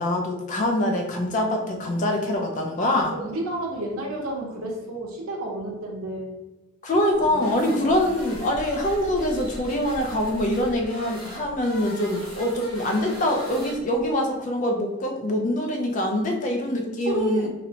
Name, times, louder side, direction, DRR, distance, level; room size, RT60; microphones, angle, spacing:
voice 1, 0.0-3.1 6.8-17.5, left 1 dB, 35° left, 2 dB, 0.3 m, -24 dB
voice 2, 3.1-6.3 7.8-7.9 17.1-17.5, right 1 dB, 80° right, -1 dB, 0.7 m, -30 dB
sound 1, 7.1-14.1, equal, 80° left, 1.2 m, -40 dB
2.6 x 2.0 x 2.8 m, 1.1 s
head